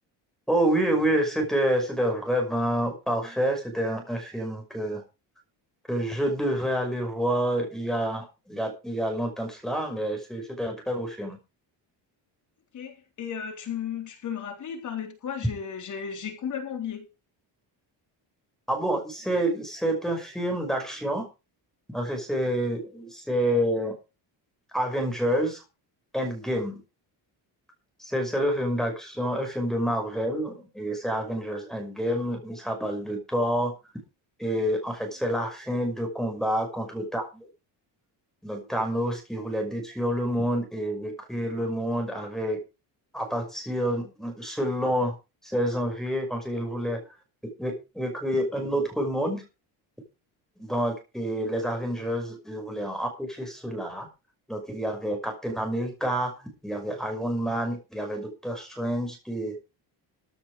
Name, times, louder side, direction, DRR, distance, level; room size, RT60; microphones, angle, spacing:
voice 1, 0.5-5.0 5.9-11.4 18.7-21.3 21.9-23.9 24.7-25.6 26.1-26.8 28.0-33.7 34.4-37.4 38.4-42.6 43.1-45.1 45.4-47.0 47.6-49.4 50.6-54.1 54.5-56.3 56.6-59.5, equal, ahead, 5.7 m, -28 dB
voice 2, 12.7-17.1, left 8 dB, 45° left, 3.7 m, -34 dB
15.0 x 10.0 x 4.9 m
cardioid pair, 165°, 43 cm